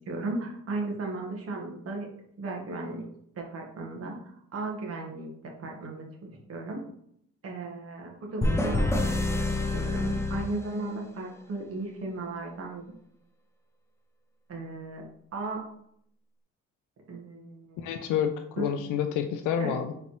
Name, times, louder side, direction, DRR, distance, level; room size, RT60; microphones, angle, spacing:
voice 1, 0.1-2.1 2.4-3.0 3.3-6.0 6.5-6.8 7.4-12.9 14.5-15.0 15.3-15.6 17.1-17.9 18.6-18.7 19.6-19.8, right 3 dB, 50° right, 0 dB, 1.2 m, -36 dB
sound 1, 8.4-11.2, left 2 dB, 10° left, 0.5 m, -28 dB
voice 2, 17.8-19.9, left 8 dB, 85° left, 6 dB, 0.5 m, -29 dB
3.9 x 3.3 x 3.0 m, 0.69 s
cardioid pair, 90°, 30 cm